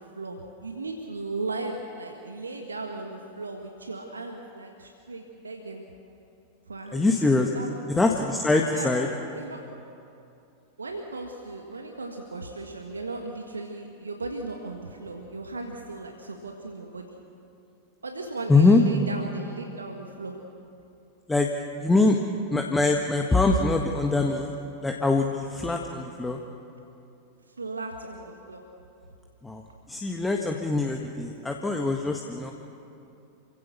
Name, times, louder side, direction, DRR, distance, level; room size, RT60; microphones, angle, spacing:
voice 1, 0.0-5.8 6.7-8.0 8.7-9.0 9.3-9.6 10.8-17.2 18.0-20.4 27.5-28.7, right 3 dB, 75° right, 3 dB, 1.7 m, -37 dB
voice 2, 6.9-7.5 8.0-9.1 18.5-18.8 21.3-21.5 21.8-22.2 22.5-24.5 24.8-26.4 29.4-29.6 29.9-32.5, left 3 dB, 10° left, 2 dB, 1.6 m, -23 dB
28.0 x 16.5 x 7.0 m, 2.6 s
figure-of-eight pair, 90°, 0 cm